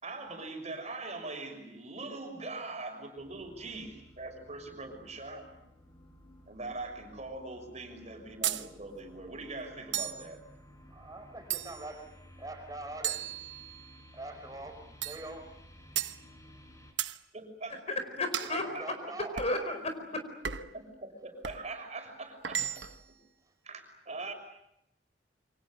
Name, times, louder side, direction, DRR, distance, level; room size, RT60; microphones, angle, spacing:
voice 1, 0.0-5.4 6.5-10.4 17.3-17.8 18.7-19.1 20.4-23.2 23.6-24.3, right 2 dB, 40° right, 5 dB, 6.2 m, -42 dB
sound 1, 3.2-16.9, left 1 dB, 20° left, 4.2 m, -56 dB
sound 2, 8.4-8.7 9.9-10.3 11.5-12.0 13.0-13.9 15.0-15.3 16.0-16.2 17.0-17.2 18.3-18.6 19.4-19.6 20.4-20.8 21.4-21.7 22.4-23.0, right 10 dB, 75° right, 1.1 m, -35 dB
voice 2, 10.9-12.1 12.4-13.4 14.1-15.5 18.4-19.3, right 2 dB, 20° right, 6 dB, 5.2 m, -44 dB
voice 3, 17.7-18.7 19.4-20.2, left 2 dB, 35° left, 7 dB, 4.8 m, -33 dB
28.5 x 25.0 x 8.0 m, 0.81 s
head